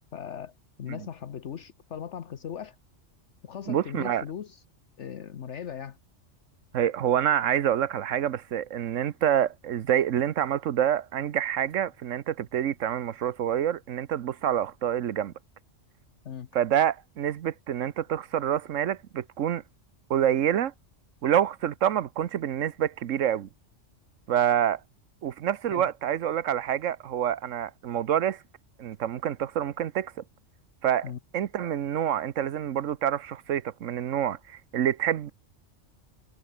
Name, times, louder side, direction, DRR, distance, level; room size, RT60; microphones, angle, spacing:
voice 1, 0.1-0.5 0.8-2.8 3.4-4.6 5.0-6.0 16.2-16.5 25.7-25.9 31.0-31.2, left 8 dB, 65° left, 1.3 m, -38 dB
voice 2, 3.7-4.2 6.7-15.3 16.5-19.6 20.1-20.7 21.2-23.5 24.3-24.8 25.2-28.4 28.8-30.1 30.8-35.3, right 10 dB, 85° right, 1.2 m, -27 dB
omnidirectional pair, 1.3 m